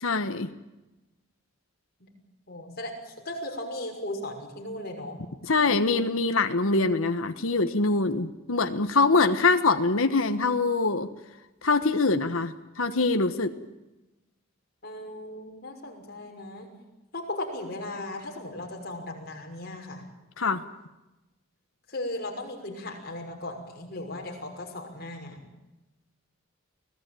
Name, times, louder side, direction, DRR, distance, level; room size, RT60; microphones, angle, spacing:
voice 1, 0.0-0.5 5.5-11.1 11.6-13.5 20.4-20.6, left 3 dB, 80° left, 8 dB, 1.3 m, -24 dB
voice 2, 2.5-5.2 14.8-16.7 17.1-20.1 21.9-25.4, left 1 dB, 50° left, 1 dB, 6.0 m, -37 dB
24.5 x 17.5 x 9.2 m, 1.0 s
head